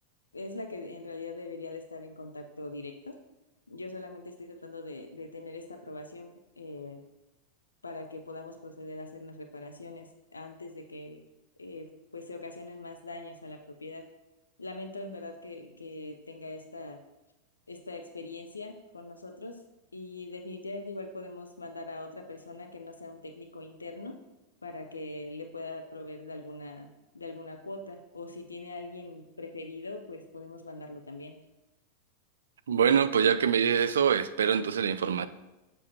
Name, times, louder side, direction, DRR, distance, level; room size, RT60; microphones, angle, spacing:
voice 1, 0.3-3.2 3.7-6.3 6.6-7.0 7.8-11.2 11.6-14.1 14.6-17.0 17.7-19.6 19.9-24.2 24.6-31.4, left 2 dB, 80° left, 0.5 m, -42 dB
voice 2, 32.7-35.3, right 7 dB, 65° right, 0.3 m, -24 dB
7.2 x 6.8 x 2.9 m
figure-of-eight pair, 90°, 0 cm